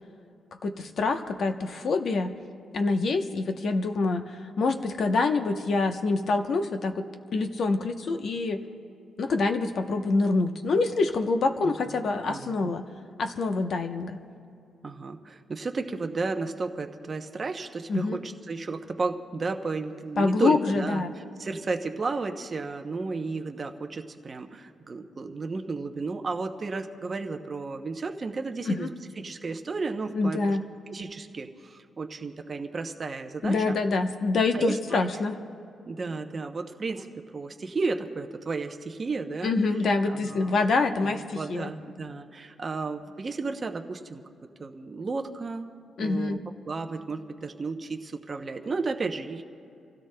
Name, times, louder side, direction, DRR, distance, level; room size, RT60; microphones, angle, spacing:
voice 1, 0.6-2.3 2.7-7.0 7.3-8.6 9.2-12.8 13.2-14.2 17.9-18.2 20.2-21.1 28.6-28.9 30.1-30.6 33.4-35.4 39.4-41.7 46.0-46.4, left 3 dB, 50° left, 6 dB, 0.8 m, -26 dB
voice 2, 11.6-12.0 12.3-12.7 14.8-28.9 29.2-30.6 30.9-33.8 34.5-35.1 35.9-39.5 40.1-40.7 41.0-44.2 44.6-45.7 46.0-46.4 46.7-49.4, right 3 dB, 25° right, 5 dB, 0.7 m, -33 dB
29.5 x 16.5 x 2.2 m, 2.6 s
wide cardioid pair, 170°, 0 cm